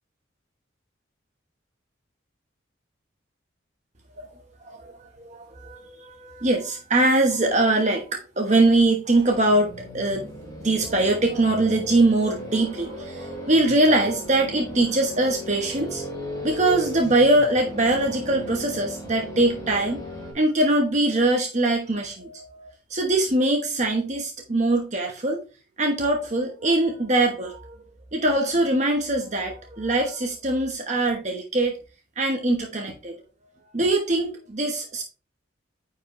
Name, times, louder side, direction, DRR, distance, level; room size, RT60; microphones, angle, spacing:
voice 1, 4.6-10.3 10.6-16.0 16.4-20.0 20.3-25.4 25.8-27.8 28.1-31.8 32.2-33.2 33.7-35.0, right 2 dB, 35° right, 1.1 m, -22 dB
sound 1, 9.4-20.3, equal, 20° left, 3.0 m, -36 dB
9.7 x 4.8 x 3.1 m
head